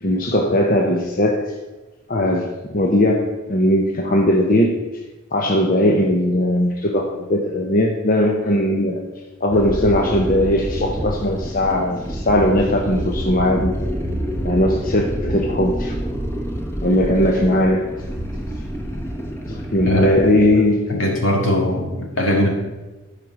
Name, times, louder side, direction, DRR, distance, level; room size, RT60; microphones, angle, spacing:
voice 1, 0.0-1.5 2.1-5.0 5.3-9.0 9.4-13.7 14.4-16.0 16.8-17.9 19.2-20.9, left 1 dB, 40° left, 1 dB, 0.8 m, -19 dB
sound 1, 9.5-20.5, equal, 10° left, 1.1 m, -27 dB
voice 2, 19.9-20.3 20.9-22.5, equal, 75° left, 0 dB, 2.5 m, -20 dB
12.5 x 5.1 x 6.2 m, 1.1 s
head